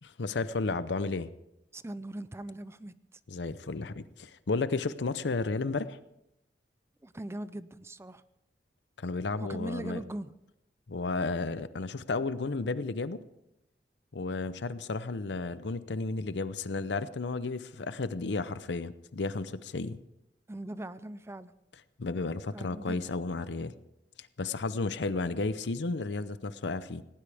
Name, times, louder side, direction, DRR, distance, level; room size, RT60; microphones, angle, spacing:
voice 1, 0.0-1.3 3.3-6.0 9.0-10.0 10.9-13.2 14.1-20.0 22.0-23.7 24.2-27.0, left 3 dB, 70° left, 14 dB, 0.7 m, -33 dB
voice 2, 1.7-3.2 7.0-8.2 9.4-10.3 20.5-21.5 22.5-23.0, right 1 dB, 15° right, 15 dB, 0.5 m, -40 dB
18.5 x 17.5 x 3.5 m, 0.88 s
head